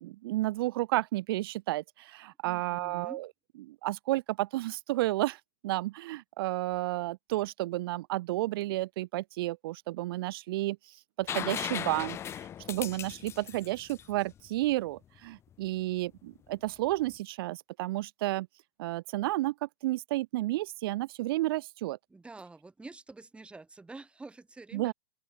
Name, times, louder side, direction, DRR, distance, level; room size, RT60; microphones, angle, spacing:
voice 1, 0.0-3.3 3.7-18.5 18.8-22.0 24.7-24.9, right 17 dB, 65° right, 1.9 m, -32 dB
voice 2, 2.4-3.2 22.1-24.9, right 3 dB, 10° right, 2.9 m, -48 dB
sound 1, 11.3-15.0 16.9-17.0, left 10 dB, 20° left, 0.4 m, -38 dB
open air
hypercardioid pair, 130°, 13 cm